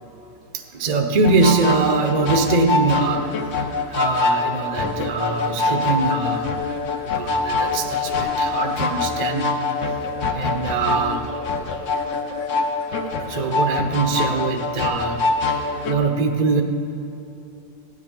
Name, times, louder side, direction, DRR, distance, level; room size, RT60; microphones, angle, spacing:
voice 1, 0.5-3.5 3.9-6.6 7.1-9.6 10.3-11.3 12.0-12.1 13.2-15.2 15.6-16.6, right 3 dB, 40° right, 4 dB, 0.6 m, -22 dB
sound 1, 1.2-15.9, left 3 dB, 60° left, 1.1 m, -24 dB
16.0 x 9.9 x 3.7 m, 2.9 s
omnidirectional pair, 1.6 m